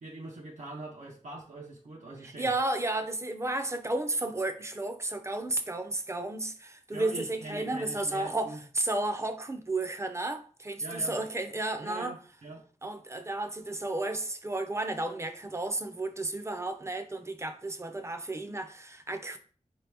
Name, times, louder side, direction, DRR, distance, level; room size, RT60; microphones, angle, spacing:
voice 1, 0.0-2.5 6.9-8.6 10.8-11.2 11.8-12.6, right 2 dB, 75° right, 0.8 m, -42 dB
voice 2, 2.2-12.1 12.8-19.4, right 2 dB, 20° right, 0.5 m, -33 dB
4.6 x 2.9 x 3.4 m
wide cardioid pair, 95°, 13 cm